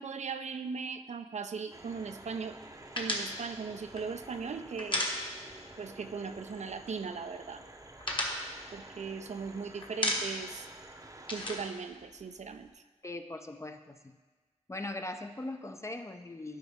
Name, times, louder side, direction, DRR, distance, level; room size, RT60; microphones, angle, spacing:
voice 1, 0.0-2.6 3.0-5.0 5.8-7.6 8.7-10.7 11.3-12.7, right 5 dB, 70° right, 9 dB, 0.5 m, -38 dB
sound 1, 1.7-11.7, right 2 dB, 30° right, 0.7 m, -50 dB
sound 2, 2.9-5.7 6.0-6.2 6.5-7.2 7.5-9.5 9.8-10.6 10.8-12.7, left 1 dB, 40° left, 1.2 m, -35 dB
voice 2, 13.0-14.1 14.7-16.6, left 2 dB, 25° left, 6 dB, 0.4 m, -40 dB
12.0 x 4.8 x 3.5 m, 1.3 s
wide cardioid pair, 65°, 12 cm